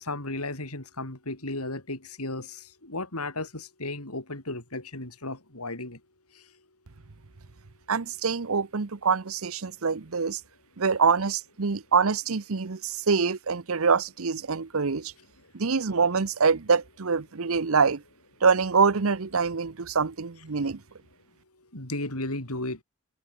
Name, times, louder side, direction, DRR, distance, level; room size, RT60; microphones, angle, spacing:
voice 1, 0.0-6.0 6.3-6.4 21.7-22.8, left 2 dB, 85° left, 6.0 m, -34 dB
voice 2, 7.9-10.4 10.8-15.1 15.5-18.0 18.4-20.8, right 5 dB, 65° right, 0.8 m, -25 dB
head